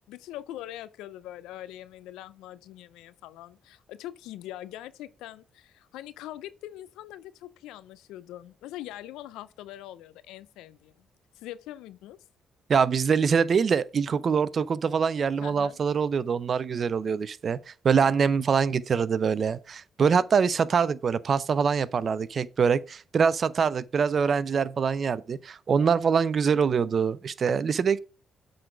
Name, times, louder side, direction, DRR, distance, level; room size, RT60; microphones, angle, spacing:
voice 1, 0.1-11.1 11.3-12.2 15.4-15.8, left 13 dB, 85° left, 0.4 m, -42 dB
voice 2, 12.7-28.0, right 6 dB, 55° right, 0.5 m, -24 dB
7.7 x 3.9 x 5.0 m
supercardioid pair, 60°, 0 cm